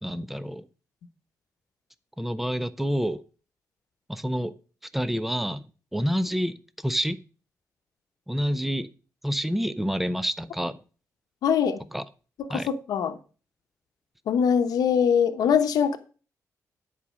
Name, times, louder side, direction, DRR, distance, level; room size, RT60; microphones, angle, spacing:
voice 1, 0.0-0.6 2.2-3.2 4.1-4.5 4.9-7.2 8.3-8.9 9.2-10.8 11.9-12.0 12.5-12.7, equal, 5° right, 0.6 m, -28 dB
voice 2, 11.4-11.8 12.4-13.2 14.3-16.0, left 7 dB, 85° left, 0.9 m, -23 dB
10.0 x 4.9 x 6.2 m
cardioid pair, 120°, 6 cm